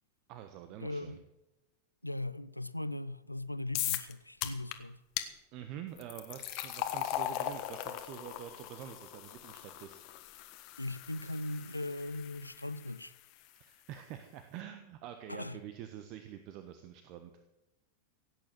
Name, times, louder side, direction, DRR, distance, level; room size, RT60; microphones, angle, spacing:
voice 1, 0.3-1.2 5.5-10.0 13.5-17.3, right 10 dB, 40° right, 1.3 m, -46 dB
voice 2, 0.8-1.2 2.0-5.0 10.8-13.1 15.3-15.6, left 2 dB, 85° left, 0.6 m, -39 dB
sound 1, 3.7-4.1 4.4-4.8 5.2-5.3 6.0-13.1, left 13 dB, 45° left, 1.4 m, -39 dB
17.0 x 9.2 x 7.6 m
figure-of-eight pair, 90°, 0 cm